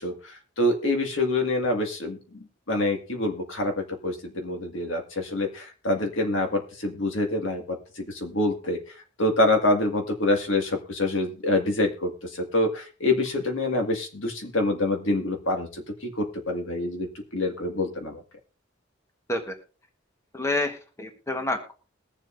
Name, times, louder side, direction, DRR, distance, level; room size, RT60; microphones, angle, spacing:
voice 1, 0.0-8.8 9.2-17.1 17.3-18.2, left 2 dB, 70° left, 3 dB, 2.0 m, -26 dB
voice 2, 20.3-21.7, left 2 dB, 15° left, 4 dB, 1.3 m, -28 dB
21.5 x 7.3 x 2.6 m, 0.36 s
head